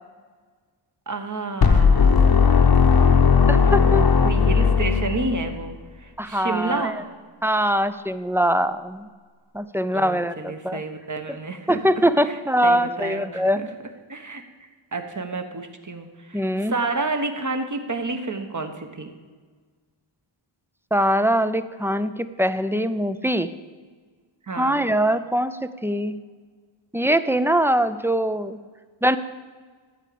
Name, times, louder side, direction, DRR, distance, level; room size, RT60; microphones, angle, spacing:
voice 1, 1.1-2.3 3.6-7.1 9.9-12.4 12.6-13.7 14.1-14.4 14.9-19.1 24.5-24.8, right 3 dB, 35° right, 6 dB, 1.2 m, -30 dB
sound 1, 1.6-5.6, left 6 dB, 50° left, 0.9 m, -17 dB
voice 2, 3.5-4.1 6.2-6.9 7.4-9.1 9.5-10.8 11.7-13.6 16.3-16.7 20.9-23.5 24.5-26.2 26.9-28.6 29.0-29.2, equal, 5° right, 12 dB, 0.4 m, -22 dB
12.5 x 4.9 x 8.5 m, 1.5 s
wide cardioid pair, 80°, 49 cm